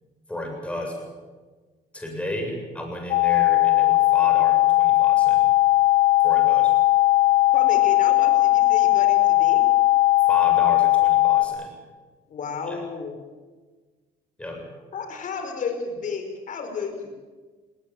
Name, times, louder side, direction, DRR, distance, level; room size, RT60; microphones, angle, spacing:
voice 1, 0.3-1.1 1.9-5.5 6.2-6.8 10.3-11.7 12.7-12.8 14.4-14.7, left 1 dB, 5° left, 2 dB, 7.5 m, -33 dB
sound 1, 3.1-11.5, left 17 dB, 75° left, 2.2 m, -18 dB
voice 2, 7.5-9.7 12.3-13.1 14.9-17.2, left 5 dB, 50° left, 6 dB, 4.8 m, -32 dB
20.0 x 19.0 x 9.1 m, 1.4 s
cardioid pair, 110°, 17 cm